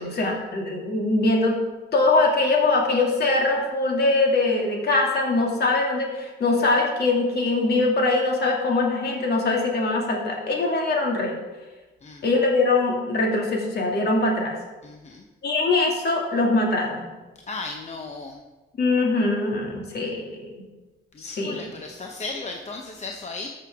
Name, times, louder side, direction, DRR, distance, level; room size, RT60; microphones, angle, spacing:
voice 1, 0.0-1.6 1.9-11.3 12.2-14.6 15.4-17.0 18.8-20.6 21.2-21.6, left 2 dB, 55° left, 0 dB, 2.4 m, -22 dB
voice 2, 14.8-15.2 17.5-18.4 21.1-23.5, left 3 dB, 35° left, 2 dB, 0.9 m, -35 dB
13.5 x 6.6 x 3.6 m, 1.2 s
cardioid pair, 90°, 20 cm